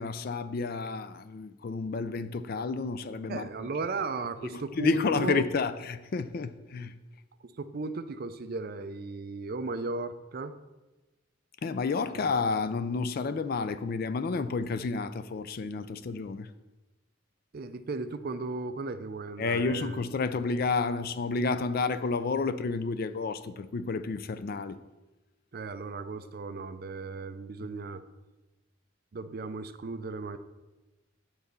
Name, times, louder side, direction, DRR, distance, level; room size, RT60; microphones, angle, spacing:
voice 1, 0.0-3.7 4.4-6.9 11.6-16.5 19.4-24.8, left 4 dB, 45° left, 0.4 m, -30 dB
voice 2, 3.3-5.5 7.4-10.6 17.5-20.0 25.5-28.0 29.1-30.4, right 3 dB, 45° right, 0.4 m, -36 dB
8.6 x 4.0 x 6.8 m
head